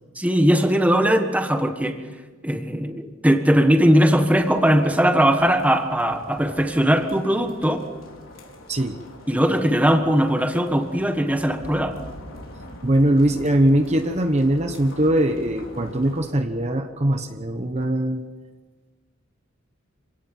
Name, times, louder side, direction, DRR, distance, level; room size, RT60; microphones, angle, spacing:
voice 1, 0.2-2.0 2.4-7.9 9.3-12.0, equal, 5° right, 6 dB, 1.5 m, -19 dB
sound 1, 4.1-16.3, left 1 dB, 80° left, 4.7 m, -43 dB
voice 2, 8.7-9.0 12.8-18.2, right 1 dB, 35° right, 6 dB, 1.1 m, -21 dB
27.0 x 17.5 x 7.6 m, 1.4 s
head